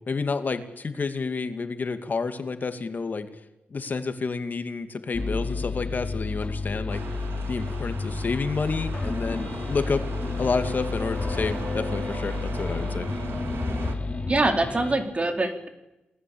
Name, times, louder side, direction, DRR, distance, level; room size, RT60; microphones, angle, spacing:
voice 1, 0.1-3.3 3.7-7.0 7.5-10.0 10.4-13.1, left 4 dB, 50° left, 9 dB, 2.5 m, -29 dB
sound 1, 5.1-15.0, left 3 dB, 30° left, 3.9 m, -30 dB
sound 2, 6.9-14.0, right 5 dB, 75° right, 3.1 m, -40 dB
voice 2, 14.3-15.7, right 2 dB, 30° right, 6 dB, 4.7 m, -24 dB
29.0 x 20.0 x 8.9 m, 0.95 s
cardioid pair, 75°, 4 cm